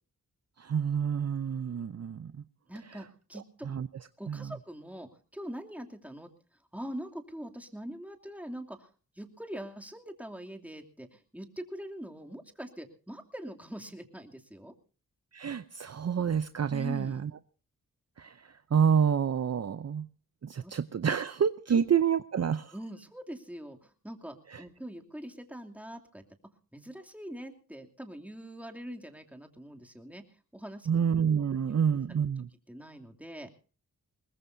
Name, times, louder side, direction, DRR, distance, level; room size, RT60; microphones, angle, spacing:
voice 1, 0.6-2.3 3.6-3.9 4.3-4.4 15.3-17.3 18.2-18.4 18.7-20.1 20.4-22.7 24.5-24.6 30.9-32.5, right 7 dB, 50° right, 13 dB, 0.6 m, -28 dB
voice 2, 2.7-3.7 4.2-6.3 6.7-8.9 9.1-14.7 16.7-17.3 20.6-20.7 21.7-21.8 22.7-26.2 26.7-30.2 30.5-30.9 32.1-32.2 32.7-33.5, equal, 5° right, 4 dB, 2.7 m, -43 dB
22.0 x 19.5 x 2.7 m, 0.36 s
cardioid pair, 55°, 34 cm